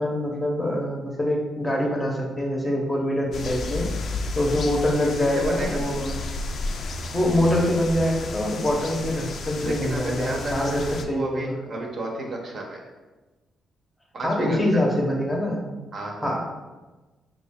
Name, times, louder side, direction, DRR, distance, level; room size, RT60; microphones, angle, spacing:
voice 1, 0.0-3.9 4.4-6.2 7.1-11.5 14.2-15.6 16.2-16.4, left 1 dB, 10° left, -1 dB, 0.7 m, -24 dB
sound 1, 3.3-11.0, left 3 dB, 55° left, 0.4 m, -32 dB
voice 2, 5.2-5.8 9.6-12.8 14.1-14.6 15.9-16.4, right 2 dB, 50° right, 0 dB, 0.8 m, -32 dB
4.9 x 2.4 x 3.5 m, 1.2 s
cardioid pair, 115°, 0 cm